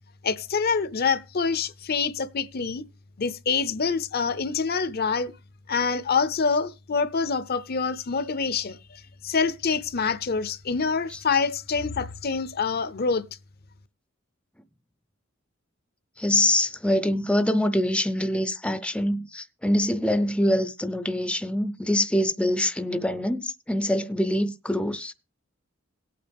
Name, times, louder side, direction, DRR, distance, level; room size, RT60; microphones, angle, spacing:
voice 1, 0.2-2.8 3.2-5.3 5.7-13.2, left 5 dB, 50° left, 0.6 m, -26 dB
voice 2, 16.2-25.1, left 1 dB, 5° left, 0.5 m, -24 dB
18.0 x 8.6 x 3.5 m
head